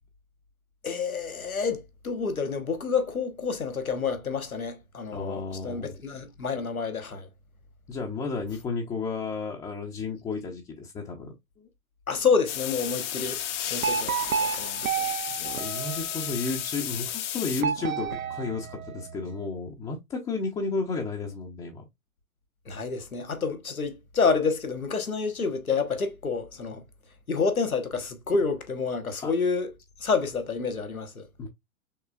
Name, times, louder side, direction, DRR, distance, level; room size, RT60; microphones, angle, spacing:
voice 1, 0.8-7.3 12.1-13.4 13.7-14.8 22.7-26.8 27.3-29.7 30.0-31.3, left 5 dB, 85° left, 1.1 m, -28 dB
voice 2, 5.1-5.9 7.9-11.7 15.3-21.9 29.2-29.3 31.4-31.5, left 4 dB, 10° left, 0.5 m, -33 dB
sound 1, 12.5-17.6, left 11 dB, 60° left, 0.7 m, -33 dB
sound 2, 13.8-16.5 17.6-19.4, right 7 dB, 80° right, 0.6 m, -31 dB
5.7 x 3.2 x 2.3 m
figure-of-eight pair, 105°, 41 cm